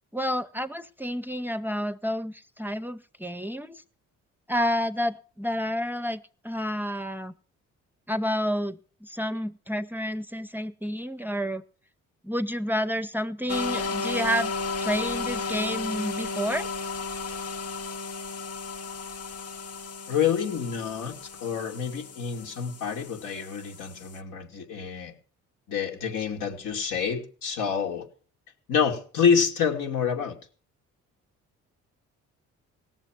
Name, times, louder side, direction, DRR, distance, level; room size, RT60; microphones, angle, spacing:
voice 1, 0.1-3.8 4.5-7.3 8.1-11.6 12.2-14.5 14.8-16.7, equal, 5° right, 11 dB, 0.6 m, -30 dB
sound 1, 13.5-24.2, left 4 dB, 55° left, 1.0 m, -34 dB
voice 2, 20.1-21.1 21.4-25.1 25.7-28.1 28.7-30.4, left 7 dB, 85° left, 2 dB, 2.6 m, -27 dB
18.0 x 7.2 x 7.5 m, 0.41 s
cardioid pair, 90°, 30 cm